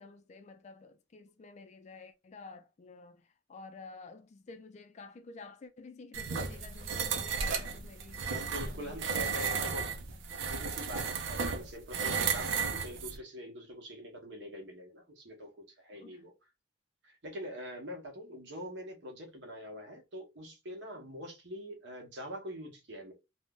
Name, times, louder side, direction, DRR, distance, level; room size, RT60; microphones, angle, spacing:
voice 1, 0.0-9.7 16.0-16.2, left 3 dB, 35° left, 0.3 m, -51 dB
sound 1, 6.1-13.2, right 5 dB, 80° right, 0.5 m, -34 dB
voice 2, 8.3-9.9 10.4-16.3 17.0-23.1, equal, 65° right, 0.9 m, -44 dB
2.5 x 2.1 x 3.5 m
head